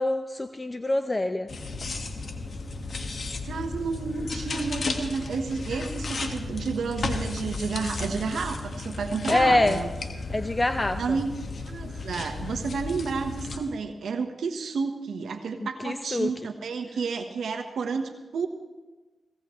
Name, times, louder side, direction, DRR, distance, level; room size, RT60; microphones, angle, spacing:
voice 1, 0.0-1.5 9.3-9.8 10.3-11.2 15.6-16.3, left 2 dB, 30° left, 8 dB, 0.8 m, -25 dB
sound 1, 1.5-13.6, left 3 dB, 60° left, 1.7 m, -34 dB
voice 2, 3.4-9.9 11.0-11.3 11.6-18.5, right 5 dB, 85° right, 6 dB, 1.1 m, -31 dB
18.5 x 17.5 x 3.2 m, 1.2 s
cardioid pair, 50°, 0 cm